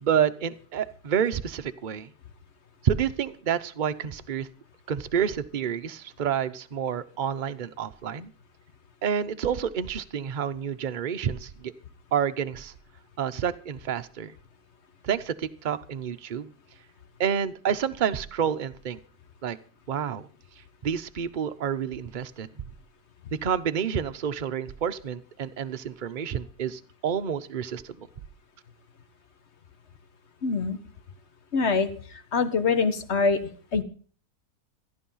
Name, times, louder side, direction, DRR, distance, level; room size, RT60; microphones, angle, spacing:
voice 1, 0.0-2.1 2.8-4.5 4.9-8.3 9.0-11.7 12.1-12.7 13.2-14.3 15.0-16.5 17.2-19.0 19.4-19.6 19.9-20.2 20.8-22.5 23.4-28.0, right 8 dB, 40° right, 10 dB, 0.7 m, -29 dB
voice 2, 30.4-30.8 31.5-31.9 32.3-33.4 33.7-33.8, left 4 dB, 45° left, 10 dB, 1.4 m, -23 dB
14.5 x 11.0 x 5.6 m, 0.43 s
omnidirectional pair, 1.6 m